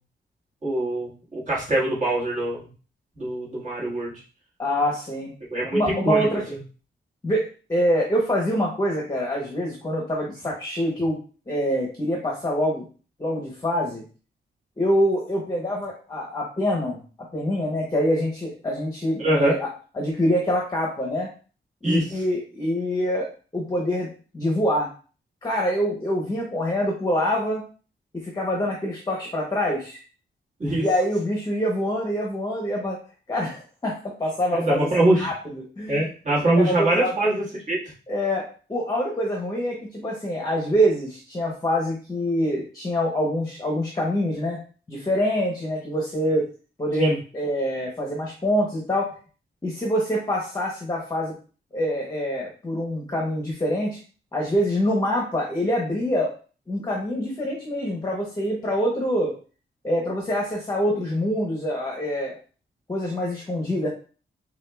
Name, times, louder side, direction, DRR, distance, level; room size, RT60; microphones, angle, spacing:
voice 1, 0.6-2.7 3.2-4.1 5.5-6.3 19.2-19.5 21.8-22.0 30.6-30.9 34.5-35.3 35.9-37.8 47.0-47.2, right 1 dB, 35° right, -6 dB, 1.6 m, -23 dB
voice 2, 4.6-5.3 5.7-6.4 7.2-11.2 11.5-12.9 13.2-14.0 14.8-17.0 17.3-19.7 19.9-21.3 21.8-24.9 25.4-27.6 28.1-30.0 30.8-33.0 33.3-34.9 35.2-36.0 36.4-37.2 38.1-44.6 44.9-46.4 46.8-49.1 49.6-51.3 51.7-54.0 54.3-56.3 56.7-59.3 59.8-62.4 62.9-63.9, equal, 20° left, -1 dB, 0.8 m, -25 dB
6.3 x 2.3 x 2.3 m, 0.37 s
wide cardioid pair, 155°, 20 cm